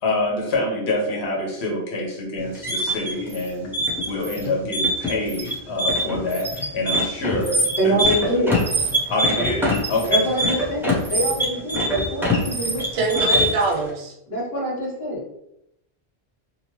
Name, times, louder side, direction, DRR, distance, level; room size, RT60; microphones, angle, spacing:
voice 1, 0.0-3.7 4.1-8.4 9.1-10.3, left 2 dB, 90° left, -1 dB, 1.1 m, -26 dB
sound 1, 2.4-13.7, equal, 5° right, 0.5 m, -23 dB
voice 2, 7.8-8.6 10.1-12.9 13.3-13.4 14.3-15.2, right 1 dB, 70° left, -3 dB, 1.2 m, -25 dB
voice 3, 12.9-14.1, right 3 dB, 85° right, 0 dB, 0.9 m, -23 dB
2.8 x 2.0 x 2.9 m, 0.79 s
omnidirectional pair, 1.1 m